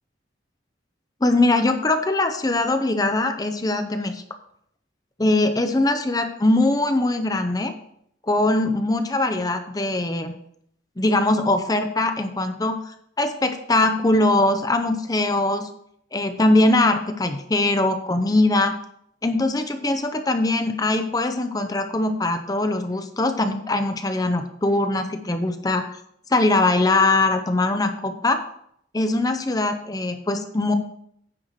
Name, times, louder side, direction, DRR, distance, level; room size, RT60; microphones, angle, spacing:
voice 1, 1.2-4.2 5.2-7.7 8.3-10.4 11.0-12.8 13.2-15.7 16.1-18.8 19.2-25.9 26.3-28.4 28.9-30.7, left 2 dB, 20° left, 7 dB, 0.6 m, -21 dB
9.5 x 4.8 x 6.5 m, 0.70 s
head